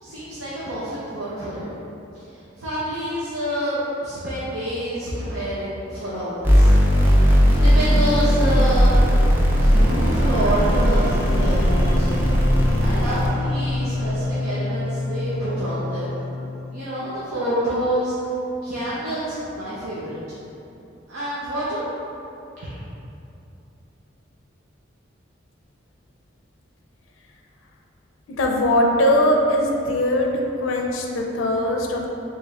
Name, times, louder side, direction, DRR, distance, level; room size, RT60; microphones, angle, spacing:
voice 1, 0.0-1.7 2.3-6.8 7.2-9.0 9.5-12.1 12.8-16.1 16.7-18.2 18.6-20.4 21.1-21.8, right 1 dB, 90° right, -10 dB, 0.7 m, -27 dB
sound 1, 6.4-13.3, equal, 10° right, 0.4 m, -17 dB
sound 2, 9.7-16.8, left 2 dB, 45° right, 1.3 m, -28 dB
voice 2, 28.4-30.3 30.6-32.1, left 1 dB, 85° left, 0 dB, 0.4 m, -20 dB
3.2 x 3.1 x 3.5 m, 2.8 s
head